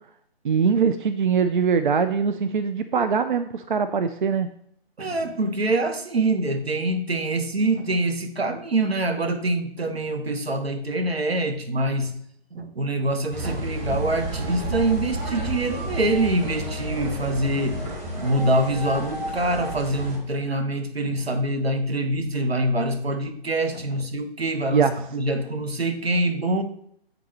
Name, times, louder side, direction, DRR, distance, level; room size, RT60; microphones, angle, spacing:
voice 1, 0.4-4.5 24.7-25.0, right 6 dB, 55° right, 10 dB, 0.4 m, -22 dB
voice 2, 5.0-12.1 12.5-17.8 18.1-26.6, right 1 dB, 75° right, 7 dB, 1.0 m, -25 dB
sound 1, 13.3-20.2, right 1 dB, 15° right, 1.1 m, -31 dB
8.1 x 3.9 x 4.3 m, 0.67 s
figure-of-eight pair, 140°, 31 cm